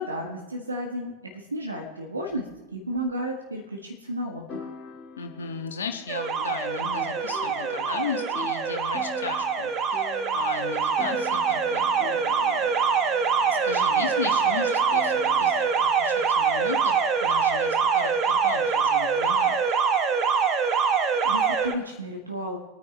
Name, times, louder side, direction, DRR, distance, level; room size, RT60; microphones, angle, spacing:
voice 1, 0.0-4.7 20.9-21.0 21.2-22.6, equal, 80° right, 1 dB, 1.7 m, -33 dB
sound 1, 3.0-3.1 4.5-15.7, left 5 dB, 25° left, 1.8 m, -44 dB
voice 2, 5.2-12.7 13.0-13.2 13.5-19.6, left 6 dB, 65° left, 4 dB, 1.7 m, -35 dB
Alarm, 6.1-21.7, right 6 dB, 30° right, 1.3 m, -24 dB
24.5 x 9.6 x 3.3 m, 1.1 s
figure-of-eight pair, 90°, 0 cm